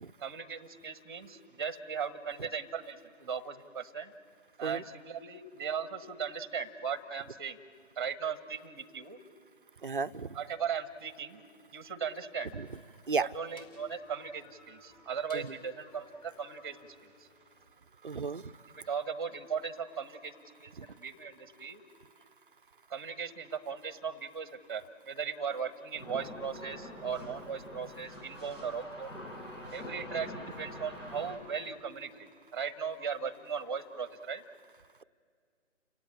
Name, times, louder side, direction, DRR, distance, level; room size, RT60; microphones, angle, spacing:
voice 1, 0.2-4.1 4.6-7.6 8.0-9.2 10.3-11.4 11.7-12.5 13.2-17.1 18.8-20.3 20.6-21.8 22.9-29.2 29.7-34.4, right 6 dB, 20° right, 14 dB, 0.9 m, -38 dB
voice 2, 9.8-10.3 12.5-12.6 13.1-13.3 15.3-15.5 18.0-18.5 20.8-20.9, right 4 dB, 45° right, 13 dB, 0.6 m, -33 dB
sound 1, 12.4-17.7, left 4 dB, 30° left, 4.2 m, -60 dB
sound 2, 25.9-31.4, left 1 dB, 80° left, 7.7 m, -45 dB
29.0 x 17.5 x 8.4 m, 2.1 s
figure-of-eight pair, 145°, 38 cm